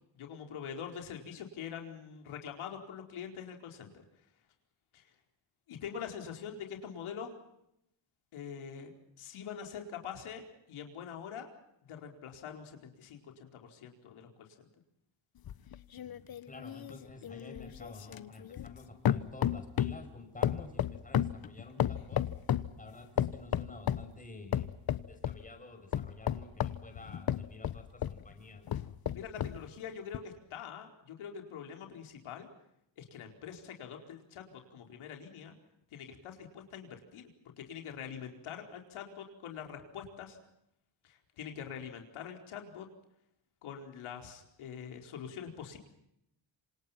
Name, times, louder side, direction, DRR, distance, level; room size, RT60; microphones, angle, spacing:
voice 1, 0.1-3.9 4.9-5.1 5.7-7.3 8.3-11.5 11.9-14.7 29.1-32.5 33.0-35.5 35.9-37.3 37.6-40.4 41.0-42.9 43.6-45.8, left 7 dB, 85° left, 3 dB, 4.7 m, -44 dB
sound 1, 15.4-18.8 19.1-20.1 20.4-22.7 23.2-24.1 24.5-25.4 25.9-28.2 28.7-29.6 30.1-30.2, left 10 dB, 50° left, 1.2 m, -33 dB
voice 2, 16.5-22.2 22.8-24.7 25.1-28.8, left 3 dB, 15° left, 5 dB, 6.3 m, -50 dB
27.5 x 26.5 x 5.9 m, 0.79 s
cardioid pair, 125°, 47 cm